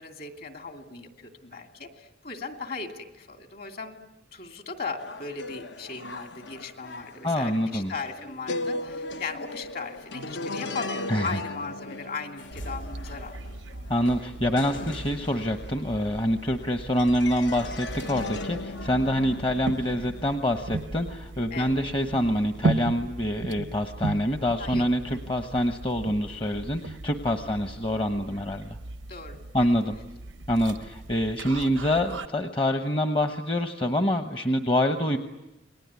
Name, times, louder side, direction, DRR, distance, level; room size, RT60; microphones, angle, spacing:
voice 1, 0.0-4.0 4.3-13.5 18.7-18.8 21.5-21.7 24.6-24.9 29.1-29.7, left 4 dB, 50° left, 6 dB, 2.7 m, -38 dB
sound 1, 5.0-16.6 17.0-20.3, left 2 dB, 70° left, 1.0 m, -38 dB
voice 2, 7.2-7.9 11.1-11.4 13.9-28.8 29.5-30.0 30.5-35.2, equal, 25° left, 7 dB, 1.1 m, -26 dB
sound 2, 12.4-16.7 17.9-18.0, left 1 dB, 85° left, 2.4 m, -45 dB
sound 3, 12.5-32.3, right 2 dB, 85° right, 0.9 m, -37 dB
28.5 x 21.0 x 9.7 m, 0.95 s
head